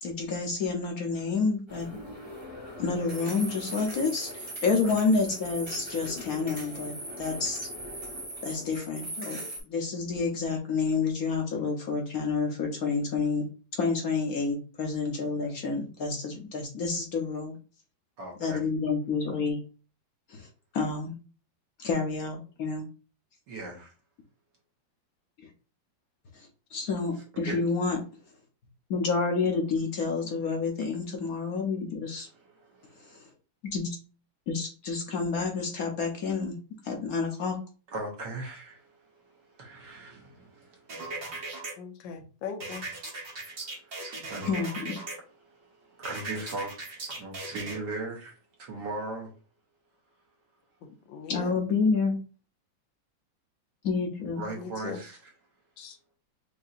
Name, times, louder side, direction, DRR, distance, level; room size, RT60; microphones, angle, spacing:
voice 1, 0.0-1.9 2.8-7.7 8.4-13.5 13.7-17.5 18.4-19.6 20.3-20.5 20.7-21.2 21.8-22.9 26.3-28.0 28.9-32.3 33.1-33.2 33.7-33.9 34.5-36.5 36.8-37.6 44.4-45.0 51.3-52.2 53.8-54.4, left 4 dB, 60° left, 1.1 m, -29 dB
sound 1, 1.7-9.6, right 1 dB, 20° right, 0.9 m, -40 dB
voice 2, 18.2-18.6 23.5-23.9 27.5-27.6 32.3-33.2 37.9-41.5 43.3-44.5 45.4-48.3 48.6-49.3 54.3-55.2, right 2 dB, 65° right, 1.8 m, -39 dB
sound 2, 40.9-41.7 42.6-45.1 46.0-47.8, right 3 dB, 50° right, 1.5 m, -38 dB
voice 3, 41.8-42.8 51.1-51.5 54.6-55.0 55.8-56.0, left 6 dB, 85° left, 1.4 m, -39 dB
5.4 x 2.7 x 2.5 m
omnidirectional pair, 2.0 m